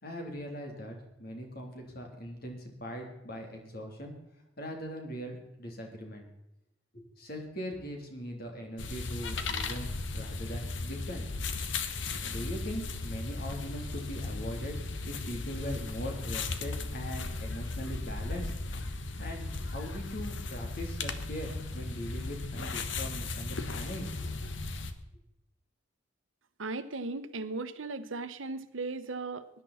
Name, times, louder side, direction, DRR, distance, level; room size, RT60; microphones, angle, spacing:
voice 1, 0.0-4.1 4.6-6.3 6.9-11.3 12.2-14.8 15.0-18.5 19.2-24.1, equal, 50° left, 2 dB, 3.4 m, -40 dB
sound 1, 8.8-24.9, left 3 dB, 75° left, 1.2 m, -36 dB
voice 2, 26.6-29.5, right 3 dB, 85° right, 12 dB, 1.0 m, -37 dB
20.0 x 11.0 x 4.3 m, 0.84 s
head